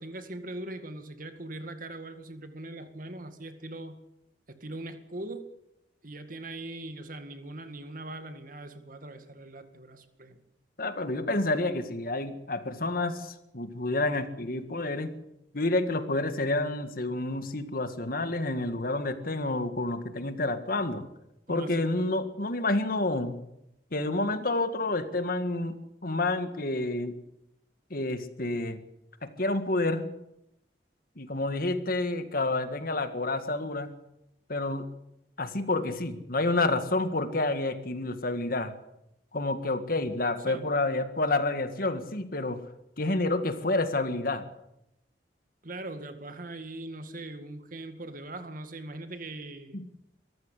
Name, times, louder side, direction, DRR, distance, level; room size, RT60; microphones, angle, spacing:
voice 1, 0.0-4.0 4.5-5.5 6.0-10.4 21.5-21.9 40.4-40.7 45.6-49.8, right 2 dB, 50° right, 9 dB, 2.0 m, -41 dB
voice 2, 10.8-15.1 15.5-21.0 21.5-23.4 23.9-27.1 27.9-28.8 29.2-30.1 31.2-33.9 34.5-34.9 35.4-38.7 39.3-42.6 43.0-44.5 49.7-49.9, left 2 dB, 55° left, 9 dB, 1.8 m, -29 dB
23.5 x 14.0 x 8.4 m, 0.85 s
head